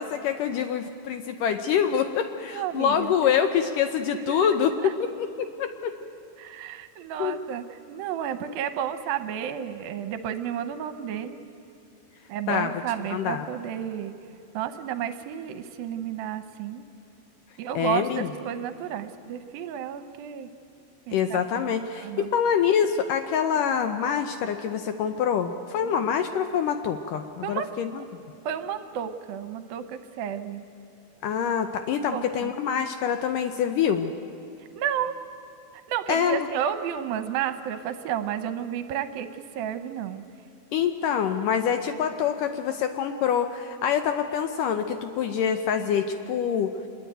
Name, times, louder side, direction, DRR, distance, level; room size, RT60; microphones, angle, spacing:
voice 1, 0.0-6.0 7.2-7.4 12.5-12.7 13.1-13.5 17.8-18.3 21.1-28.0 31.2-34.1 36.1-36.5 40.7-46.7, left 8 dB, 75° left, 7 dB, 2.1 m, -25 dB
voice 2, 2.5-3.1 3.6-3.7 4.3-4.5 4.8-4.9 6.4-11.4 12.3-14.1 14.5-16.8 17.6-20.5 21.1-22.3 25.8-26.1 27.4-27.7 28.0-28.1 28.4-30.6 32.1-32.5 34.6-35.2 35.9-40.2, right 9 dB, 75° right, 10 dB, 2.4 m, -32 dB
25.5 x 21.0 x 9.1 m, 2.6 s
omnidirectional pair, 4.5 m